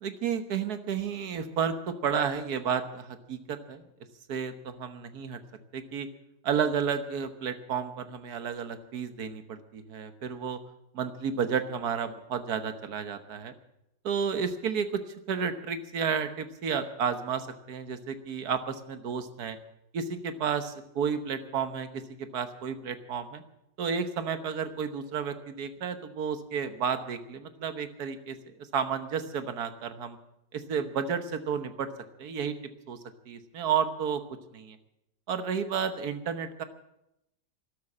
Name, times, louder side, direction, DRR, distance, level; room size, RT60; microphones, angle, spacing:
voice 1, 0.0-3.8 4.3-5.4 5.7-6.1 6.4-10.6 10.9-13.5 14.0-15.0 15.3-19.6 19.9-23.4 23.8-28.4 28.7-30.2 30.5-31.9 32.2-32.6 32.9-33.0 33.3-34.2 34.5-34.8 35.3-36.6, right 7 dB, 60° right, 9 dB, 1.6 m, -31 dB
13.5 x 12.0 x 8.5 m, 0.86 s
omnidirectional pair, 1.9 m